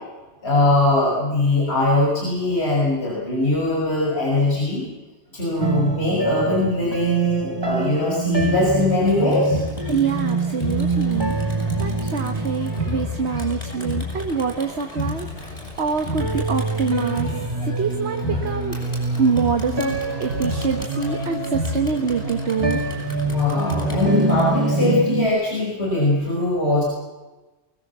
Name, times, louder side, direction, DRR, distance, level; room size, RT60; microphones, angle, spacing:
voice 1, 0.4-4.8 5.3-9.6 23.2-26.8, left 2 dB, 65° left, -5 dB, 6.4 m, -21 dB
sound 1, 5.6-15.8 16.2-25.3, right 3 dB, 20° right, 1.4 m, -26 dB
Crowd, 8.4-24.4, left 1 dB, 35° left, 7.1 m, -31 dB
voice 2, 9.9-11.3 11.8-15.3 15.8-17.3 17.6-18.8 19.2-22.8, right 5 dB, 70° right, 6 dB, 1.5 m, -25 dB
24.0 x 20.5 x 7.4 m, 1.2 s
omnidirectional pair, 1.2 m